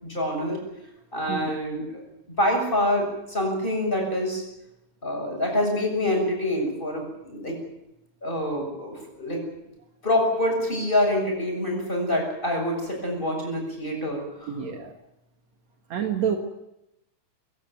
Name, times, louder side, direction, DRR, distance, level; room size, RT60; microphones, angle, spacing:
voice 1, 0.0-0.6 1.1-1.9 2.3-4.4 5.0-7.6 8.2-9.4 10.0-14.6, left 1 dB, 15° left, 1 dB, 7.3 m, -26 dB
voice 2, 14.5-14.9 15.9-16.4, right 8 dB, 60° right, 4 dB, 2.9 m, -27 dB
22.5 x 17.0 x 9.1 m, 0.88 s
omnidirectional pair, 3.6 m